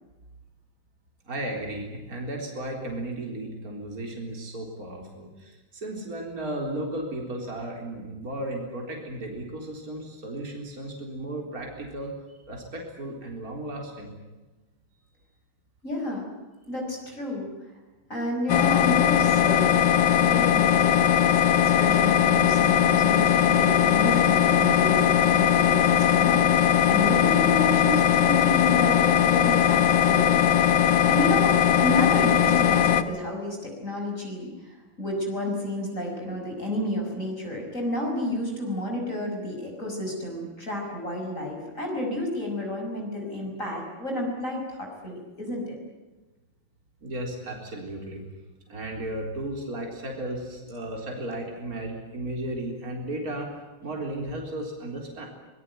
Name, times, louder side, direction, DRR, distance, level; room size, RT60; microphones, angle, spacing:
voice 1, 1.3-12.1 12.5-14.1 47.0-48.2 48.7-53.5 53.8-55.3, right 1 dB, 45° right, 1 dB, 4.5 m, -34 dB
voice 2, 15.8-16.2 16.7-17.5 18.1-19.8 20.1-21.1 21.4-30.4 31.1-45.8, left 1 dB, 35° left, 1 dB, 5.9 m, -31 dB
sound 1, 18.5-33.0, left 9 dB, 60° left, 1.7 m, -20 dB
24.0 x 21.0 x 9.4 m, 1.2 s
omnidirectional pair, 2.3 m